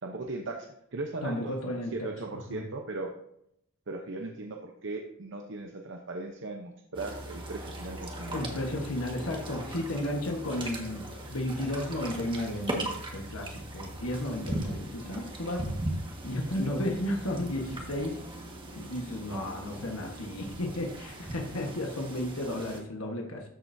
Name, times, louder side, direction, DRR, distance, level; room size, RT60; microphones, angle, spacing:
voice 1, 0.0-3.1 3.9-8.4 21.5-21.6, right 3 dB, 60° right, 2 dB, 0.9 m, -38 dB
voice 2, 1.2-2.6 8.3-15.6 16.2-18.2 18.7-23.4, left 1 dB, 80° left, 1 dB, 1.4 m, -33 dB
sound 1, 6.9-22.8, right 1 dB, 25° right, 1.6 m, -39 dB
13.5 x 7.7 x 2.7 m, 0.75 s
head